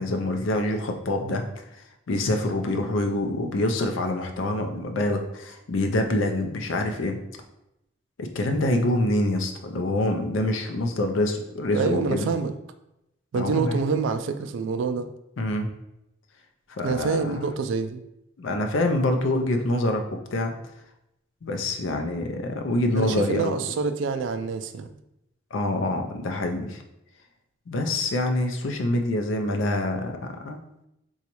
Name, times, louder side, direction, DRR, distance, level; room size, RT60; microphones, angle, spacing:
voice 1, 0.0-1.4 2.1-7.2 8.2-12.3 13.4-13.8 15.4-15.7 16.7-17.5 18.4-20.0 20.3-20.5 21.4-23.6 25.5-26.8 27.7-30.6, left 1 dB, 80° left, 5 dB, 0.5 m, -26 dB
voice 2, 11.7-12.5 13.3-15.1 16.8-18.0 22.9-24.9, right 5 dB, 70° right, 9 dB, 0.3 m, -26 dB
3.9 x 2.3 x 2.9 m, 0.85 s
head